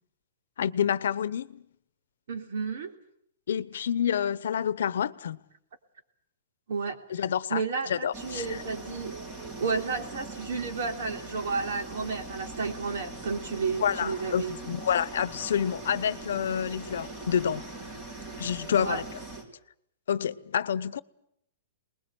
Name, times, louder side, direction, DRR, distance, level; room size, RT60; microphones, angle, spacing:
voice 1, 0.6-1.6 3.5-5.4 7.1-8.6 13.8-17.6 18.4-19.0 20.1-21.0, left 8 dB, 80° left, 0.9 m, -28 dB
voice 2, 2.3-2.9 6.7-7.0 7.5-9.2 9.6-14.6 18.8-19.0, right 5 dB, 65° right, 3.4 m, -32 dB
sound 1, 8.1-19.4, right 2 dB, 25° right, 3.9 m, -41 dB
25.0 x 20.5 x 7.9 m
hypercardioid pair, 165°, 0 cm